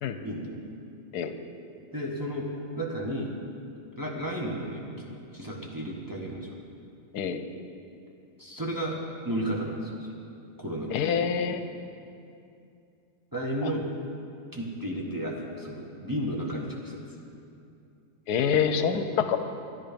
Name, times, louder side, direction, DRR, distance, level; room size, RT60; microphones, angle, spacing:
voice 1, 0.2-0.5 1.9-2.5 2.8-3.3 4.0-6.5 8.4-9.0 9.2-10.1 10.6-11.0 13.3-13.8 14.5-17.0, right 1 dB, 15° right, -3 dB, 1.2 m, -33 dB
voice 2, 10.9-11.6 13.6-13.7 18.3-19.4, left 7 dB, 80° left, 9 dB, 1.2 m, -26 dB
13.5 x 10.0 x 5.2 m, 2.6 s
omnidirectional pair, 1.7 m